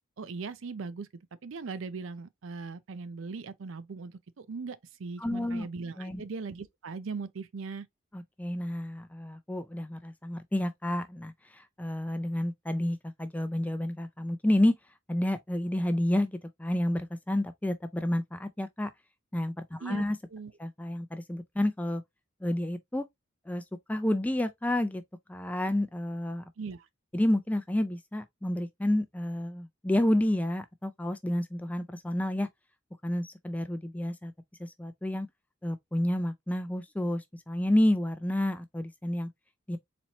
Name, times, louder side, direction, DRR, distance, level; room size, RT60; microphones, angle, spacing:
voice 1, 0.2-1.1 1.4-7.9 19.8-20.1 20.3-20.5 26.6-26.9, right 4 dB, 70° right, 0.5 m, -39 dB
voice 2, 5.2-5.7 6.0-6.2 8.1-14.7 15.1-18.9 19.3-20.2 20.6-22.0 22.4-23.1 23.5-23.6 23.9-25.0 25.3-26.5 27.1-32.5 33.0-34.3 34.6-35.3 35.6-39.3 39.7-39.8, left 1 dB, 5° left, 0.4 m, -30 dB
4.2 x 3.0 x 2.9 m
head